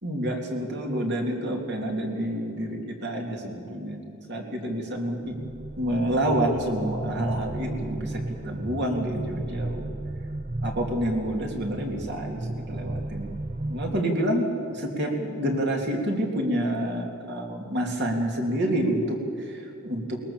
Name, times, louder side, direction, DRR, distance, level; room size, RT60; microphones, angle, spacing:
voice 1, 0.0-4.0 4.3-5.4 5.8-9.9 10.6-13.3 13.7-20.2, right 1 dB, 50° right, 1 dB, 3.0 m, -28 dB
sound 1, 5.2-14.0, right 2 dB, 30° right, 0.5 m, -34 dB
21.5 x 20.5 x 7.2 m, 2.5 s
head